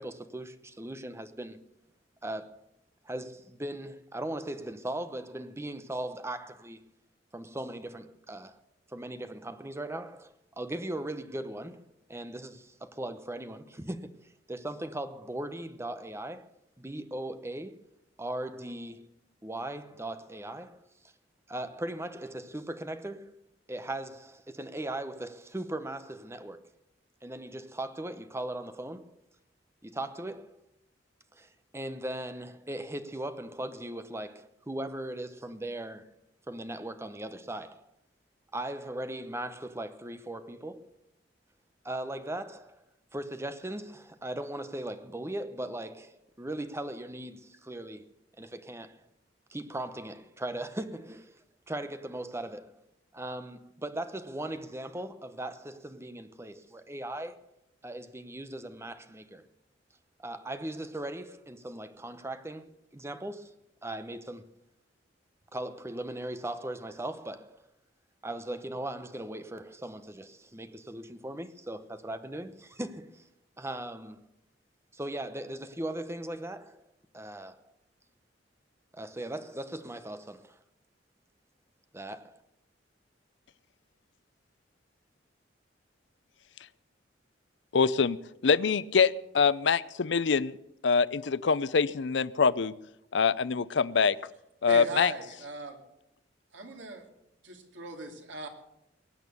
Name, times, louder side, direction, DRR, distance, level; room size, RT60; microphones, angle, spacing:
voice 1, 0.0-1.6 2.2-2.6 3.0-6.8 7.3-8.6 8.9-14.2 14.5-17.8 18.2-19.1 19.4-20.8 21.5-23.4 23.7-26.6 27.2-29.2 29.8-30.5 31.3-36.0 36.5-37.9 38.5-40.9 41.8-42.8 43.1-48.1 48.4-48.9 49.5-51.2 51.7-52.8 53.1-57.4 57.8-59.4 60.2-63.5 63.8-64.5 65.5-67.6 68.2-73.2 73.6-74.2 74.9-76.8 77.1-77.6 78.9-80.6 81.9-82.4, right 1 dB, 15° right, 0.9 m, -38 dB
voice 2, 87.7-88.2 88.4-90.6 90.8-92.7 93.1-94.2 94.6-95.1, left 5 dB, 70° left, 0.6 m, -24 dB
voice 3, 94.7-95.8 96.5-97.1 97.4-98.5, right 2 dB, 90° right, 2.9 m, -39 dB
22.0 x 8.9 x 6.9 m
head